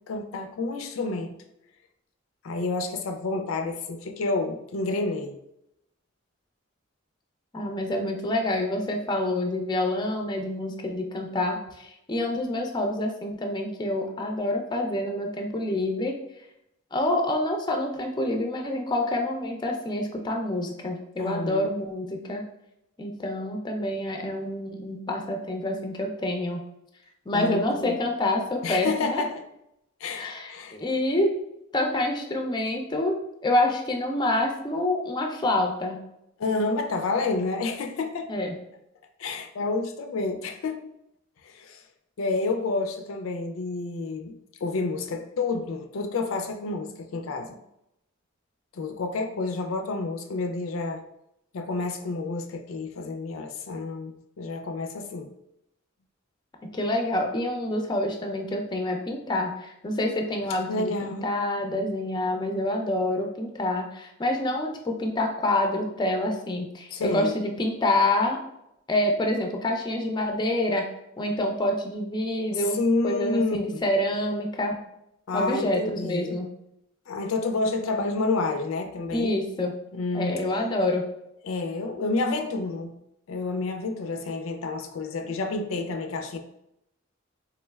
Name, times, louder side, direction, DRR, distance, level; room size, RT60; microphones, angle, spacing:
voice 1, 0.1-1.3 2.4-5.3 21.2-21.7 27.3-28.0 28.6-29.5 30.0-30.7 36.4-38.3 39.2-40.8 41.4-41.8 42.2-44.3 44.6-47.6 48.7-51.0 51.5-55.3 60.7-61.3 66.9-67.3 72.5-73.8 75.3-76.4 77.1-79.4 79.9-80.4 81.4-82.9 83.3-86.4, left 3 dB, 90° left, 0.4 m, -29 dB
voice 2, 7.5-16.2 16.9-22.4 23.0-26.6 27.3-29.2 30.2-31.3 31.7-33.1 33.4-36.0 38.3-38.5 56.6-68.4 68.9-70.9 71.2-72.8 73.0-74.8 75.3-76.5 79.1-79.7 80.1-81.0, left 1 dB, 20° left, 0.4 m, -27 dB
3.6 x 3.1 x 2.3 m
head